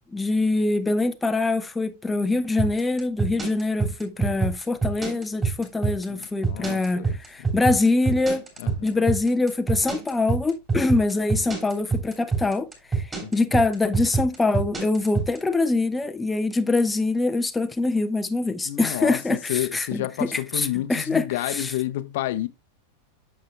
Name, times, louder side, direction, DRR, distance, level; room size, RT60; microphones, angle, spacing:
voice 1, 0.1-8.4 8.8-21.7, left 3 dB, 10° left, 0.5 m, -24 dB
sound 1, 2.6-15.4, right 4 dB, 20° right, 3.0 m, -25 dB
voice 2, 6.1-7.2 8.6-9.1 13.2-13.3 18.6-19.2 19.5-22.5, left 14 dB, 55° left, 0.7 m, -30 dB
10.5 x 6.4 x 2.2 m
figure-of-eight pair, 90°, 0 cm